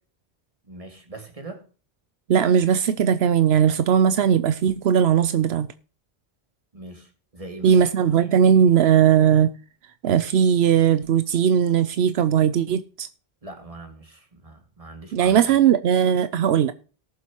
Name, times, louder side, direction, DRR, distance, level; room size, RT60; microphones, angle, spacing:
voice 1, 0.6-1.6 6.7-7.8 13.4-15.6, right 2 dB, 35° right, 2.3 m, -41 dB
voice 2, 2.3-5.7 7.6-9.5 10.0-13.1 15.1-16.7, right 8 dB, 80° right, 0.9 m, -18 dB
18.0 x 7.5 x 3.0 m
omnidirectional pair, 1.1 m